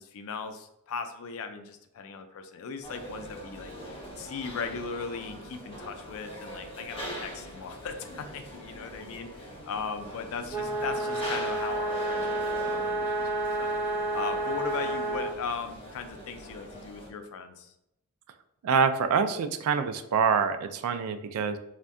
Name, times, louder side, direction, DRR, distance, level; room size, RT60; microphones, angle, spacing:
voice 1, 0.0-17.7, left 5 dB, 65° left, 7 dB, 0.4 m, -38 dB
sound 1, 2.8-17.1, equal, 25° left, 0.7 m, -42 dB
sound 2, 10.5-15.3, right 2 dB, 10° right, 0.5 m, -30 dB
voice 2, 18.6-21.6, right 6 dB, 70° right, 9 dB, 0.3 m, -26 dB
2.6 x 2.2 x 3.5 m, 0.82 s
head